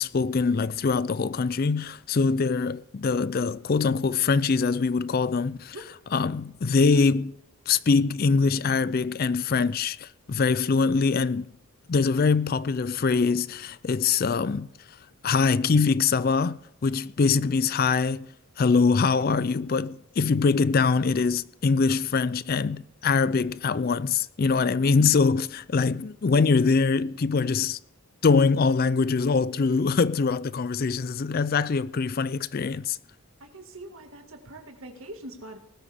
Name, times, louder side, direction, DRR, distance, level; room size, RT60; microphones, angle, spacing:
voice 1, 0.0-5.7 6.1-7.3 7.7-11.5 11.9-14.7 15.2-18.3 18.6-27.8 28.2-33.0, left 4 dB, 40° left, 0.4 m, -23 dB
voice 2, 33.4-35.6, right 1 dB, 65° right, 2.0 m, -43 dB
19.0 x 12.5 x 3.6 m
head